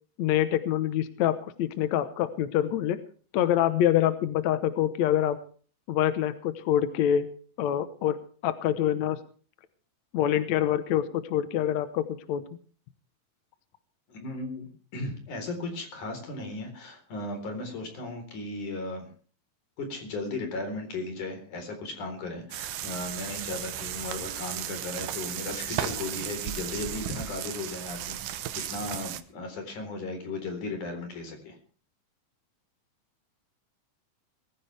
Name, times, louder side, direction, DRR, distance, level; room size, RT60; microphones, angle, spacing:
voice 1, 0.2-3.0 3.3-5.4 5.9-7.3 7.6-8.2 8.4-9.2 10.1-12.4 28.6-28.7, left 11 dB, 70° left, 11 dB, 1.8 m, -26 dB
voice 2, 14.1-19.1 19.8-31.6, left 2 dB, 55° left, 5 dB, 5.4 m, -36 dB
sound 1, 22.5-29.2, right 12 dB, 70° right, 2.5 m, -35 dB
22.0 x 15.0 x 3.4 m, 0.42 s
omnidirectional pair, 4.4 m